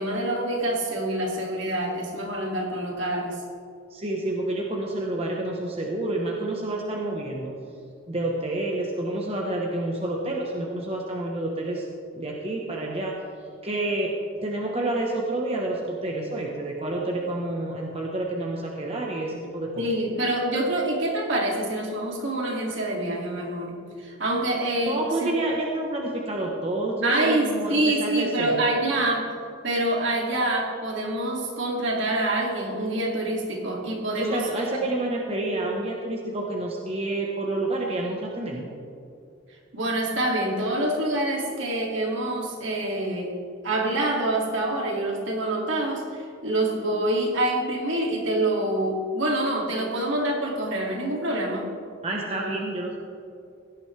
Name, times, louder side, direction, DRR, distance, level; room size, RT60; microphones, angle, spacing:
voice 1, 0.0-3.4 19.8-25.3 27.0-29.3 29.6-34.7 39.7-43.3 43.6-51.7, right 1 dB, 65° right, -1 dB, 2.6 m, -26 dB
voice 2, 3.9-7.6 8.1-11.9 12.1-13.1 13.6-14.1 14.4-19.8 24.8-28.6 34.2-38.7 52.0-53.0, right 2 dB, 30° right, -1 dB, 1.1 m, -29 dB
17.0 x 13.0 x 3.4 m, 2.5 s
head